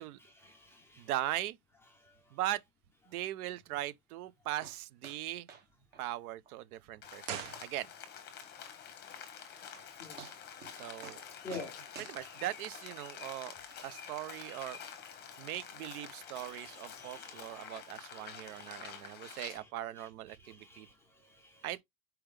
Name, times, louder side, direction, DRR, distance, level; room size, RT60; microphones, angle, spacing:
voice 1, 0.4-1.1 2.0-2.2 10.0-10.2 11.4-11.8 16.4-19.4 20.4-21.6, left 3 dB, 5° left, 0.4 m, -50 dB
voice 2, 1.0-1.6 2.3-2.6 3.1-5.5 6.0-7.9 10.8-11.2 12.0-13.5 13.8-14.8 15.4-20.9 21.6-21.8, right 14 dB, 70° right, 0.6 m, -39 dB
sound 1, 4.6-4.8 5.0-5.2 5.5-5.7 5.9-6.0 6.5-6.6 7.0-7.1 7.5-7.6 9.3-9.4 9.7-9.9 10.2-10.8 11.0-11.2 11.5-13.0 13.7-13.8, right 6 dB, 20° right, 0.8 m, -51 dB
Rain, 7.0-19.6, left 8 dB, 20° left, 1.0 m, -48 dB
sound 2, 7.2-8.3 8.6-8.7, right 9 dB, 55° right, 1.1 m, -43 dB
4.5 x 3.6 x 3.2 m
supercardioid pair, 165°, 46 cm